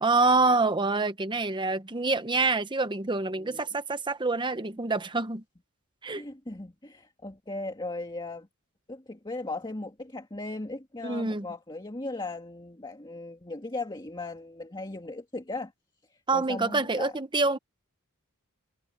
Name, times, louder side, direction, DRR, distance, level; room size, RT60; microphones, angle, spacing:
voice 1, 0.0-5.4 6.0-6.2 11.0-11.5 16.3-17.6, right 3 dB, 20° right, 1.0 m, -26 dB
voice 2, 3.3-3.7 6.1-8.5 8.9-15.7 16.1-17.1, left 2 dB, 20° left, 2.1 m, -37 dB
head